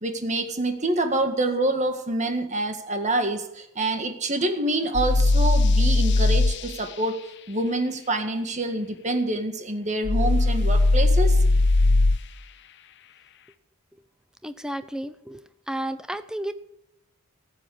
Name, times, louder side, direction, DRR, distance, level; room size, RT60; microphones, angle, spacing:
voice 1, 0.0-7.2 7.5-11.4, right 2 dB, 35° right, 6 dB, 1.9 m, -26 dB
sound 1, 4.9-6.6 10.0-12.2, left 2 dB, 55° left, 0.8 m, -19 dB
voice 2, 14.4-15.4 15.7-16.5, right 1 dB, 5° right, 11 dB, 0.7 m, -32 dB
15.0 x 7.7 x 9.5 m, 0.81 s
head